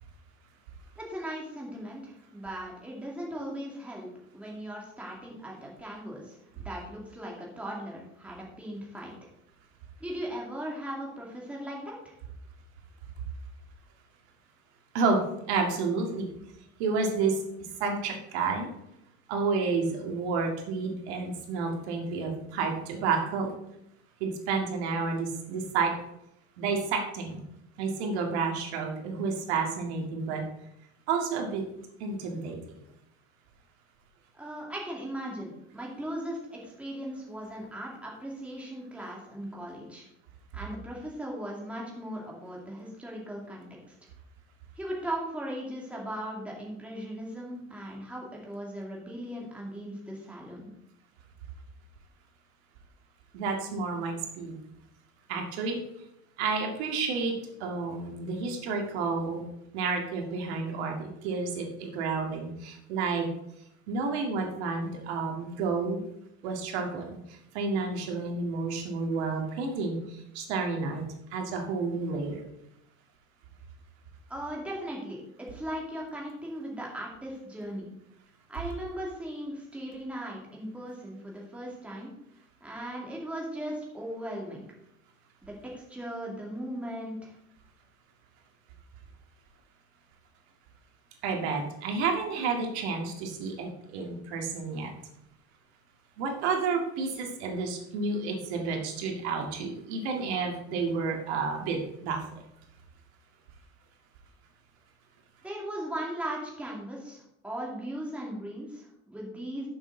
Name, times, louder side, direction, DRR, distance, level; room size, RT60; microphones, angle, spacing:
voice 1, 1.0-9.1 10.0-12.1 34.3-40.0 40.5-43.9 44.8-50.7 74.3-77.9 78.5-82.1 82.6-84.6 85.4-87.3 105.4-109.7, right 1 dB, 5° right, -3 dB, 2.3 m, -38 dB
voice 2, 15.5-16.3 16.8-17.4 17.8-18.7 19.3-23.5 24.2-25.9 26.6-27.4 27.8-30.4 31.1-31.6 32.0-32.6 53.3-54.6 55.3-55.8 56.4-57.3 57.6-59.5 59.7-63.3 63.9-66.0 66.4-72.4 91.2-94.9 96.2-102.3, right 4 dB, 85° right, 2 dB, 2.2 m, -30 dB
11.5 x 7.1 x 3.9 m, 0.83 s
cardioid pair, 160°, 32 cm